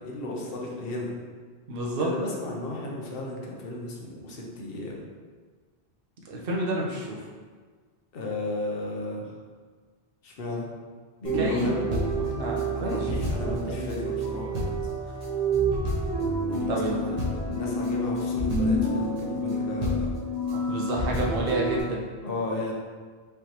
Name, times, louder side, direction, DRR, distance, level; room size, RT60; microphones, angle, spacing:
voice 1, 0.0-1.1 2.0-5.0 8.1-9.3 10.2-10.7 11.2-11.9 12.7-15.1 16.5-17.2 17.5-20.1 22.2-22.7, left 2 dB, 60° left, -2 dB, 1.0 m, -34 dB
voice 2, 1.7-2.1 6.2-7.2 11.4-13.9 16.7-17.0 20.7-22.0, right 1 dB, 60° right, -3 dB, 1.0 m, -30 dB
sound 1, 11.2-21.8, right 1 dB, 40° right, 1.2 m, -28 dB
5.3 x 3.4 x 2.9 m, 1.5 s
omnidirectional pair, 1.1 m